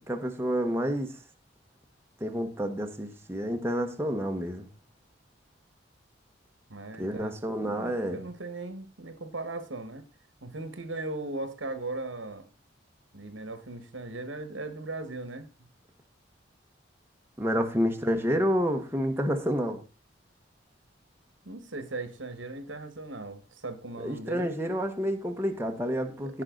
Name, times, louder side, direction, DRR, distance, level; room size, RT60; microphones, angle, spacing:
voice 1, 0.1-1.1 2.2-4.7 7.0-8.2 17.4-19.8 24.0-26.4, equal, 10° right, 1.1 m, -29 dB
voice 2, 6.7-7.3 7.6-10.0 10.4-12.5 13.1-15.5 17.6-17.7 21.4-24.5 26.1-26.4, right 2 dB, 85° right, 1.6 m, -38 dB
16.5 x 5.6 x 3.9 m
head